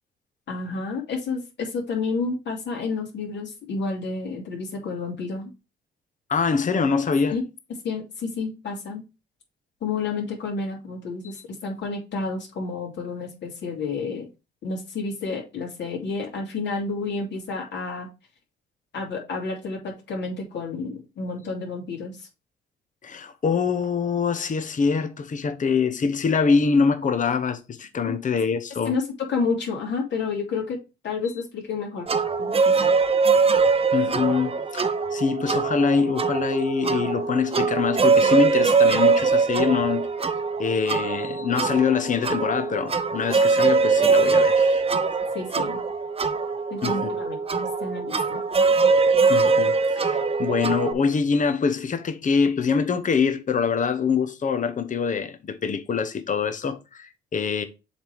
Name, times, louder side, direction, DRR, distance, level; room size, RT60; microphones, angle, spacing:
voice 1, 0.5-5.5 7.3-7.4 7.8-9.0 9.8-14.3 14.6-18.1 18.9-22.2 28.0-28.2 28.8-29.0 29.3-30.8 31.0-32.1 32.4-32.9 45.3-45.8 46.7-48.4, left 4 dB, 65° left, 3.0 m, -30 dB
voice 2, 6.3-7.4 11.2-11.3 23.0-28.9 33.9-40.3 40.6-44.8 46.8-47.1 49.3-57.6, left 5 dB, 40° left, 1.0 m, -24 dB
sound 1, 32.1-50.9, right 4 dB, 30° right, 0.8 m, -22 dB
7.1 x 3.6 x 4.7 m
cardioid pair, 90°, 20 cm